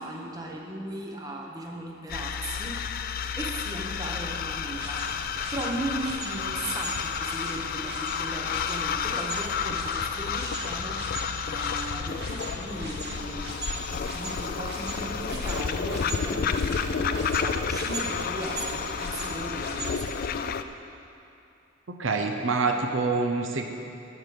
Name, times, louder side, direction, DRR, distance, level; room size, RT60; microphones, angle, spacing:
voice 1, 0.0-2.8 3.1-5.1 5.5-11.1 11.5-13.4 13.9-20.6, right 1 dB, 20° right, -1 dB, 1.0 m, -37 dB
sound 1, 2.1-20.6, left 6 dB, 45° left, 0.3 m, -31 dB
sound 2, 4.7-20.0, right 2 dB, 55° right, 1.9 m, -39 dB
voice 2, 21.9-23.6, right 3 dB, 75° right, 4 dB, 0.7 m, -26 dB
11.5 x 4.6 x 7.8 m, 2.7 s
head